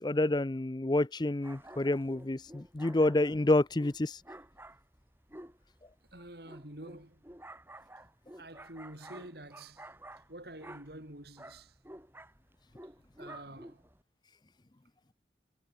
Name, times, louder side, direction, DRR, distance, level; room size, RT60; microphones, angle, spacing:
voice 1, 0.0-4.2, left 2 dB, 25° left, 0.5 m, -28 dB
sound 1, 1.4-14.0, right 1 dB, 10° right, 6.7 m, -52 dB
voice 2, 6.1-7.3 8.4-9.9 10.3-11.8 13.2-13.8, right 1 dB, 60° right, 5.7 m, -48 dB
head